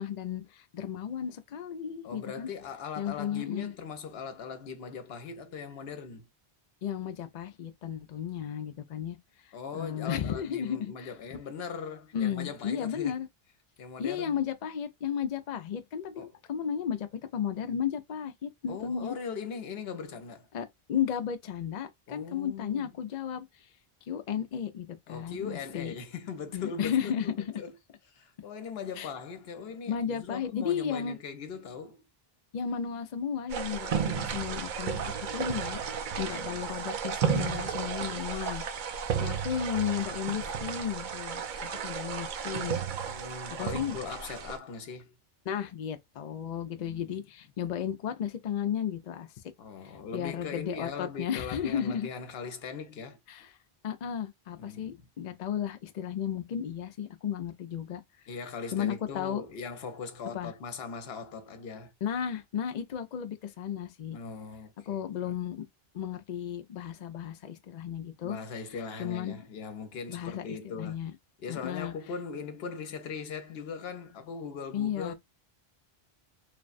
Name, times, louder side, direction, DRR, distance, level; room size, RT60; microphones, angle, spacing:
voice 1, 0.0-2.5 3.0-3.7 6.8-9.2 9.4-11.1 12.1-13.3 14.0-19.1 20.5-23.5 24.1-25.9 26.5-27.3 29.0-29.1 29.9-31.2 32.5-35.0 35.3-35.8 36.2-42.8 43.6-44.0 45.5-49.3 50.1-52.1 53.3-53.5 53.8-58.0 58.7-59.4 60.3-60.5 62.0-64.2 64.9-65.6 65.9-68.4 69.0-69.4 70.1-71.1 71.5-71.9 74.7-75.1, left 8 dB, 55° left, 0.5 m, -34 dB
voice 2, 2.0-6.3 9.5-13.2 13.8-14.4 16.2-16.3 18.7-20.5 22.1-22.9 25.1-27.7 28.1-32.1 36.3-36.8 43.1-45.2 46.8-47.1 49.6-53.2 54.6-55.0 58.3-61.9 64.1-65.3 68.2-71.0 71.4-75.1, left 5 dB, 75° left, 0.9 m, -40 dB
sound 1, 33.5-44.6, right 7 dB, 55° right, 0.6 m, -33 dB
3.2 x 2.1 x 2.4 m
omnidirectional pair, 1.0 m